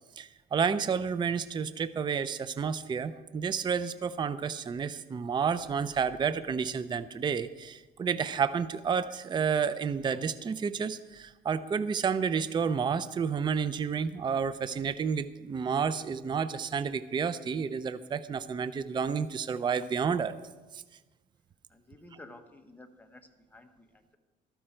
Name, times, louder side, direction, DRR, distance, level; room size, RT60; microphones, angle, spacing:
voice 1, 0.2-20.4 20.7-20.8, right 6 dB, 25° right, 14 dB, 0.5 m, -30 dB
voice 2, 21.7-24.2, left 2 dB, 10° left, 5 dB, 1.3 m, -53 dB
13.5 x 13.0 x 4.4 m, 1.2 s
cardioid pair, 110°, 17 cm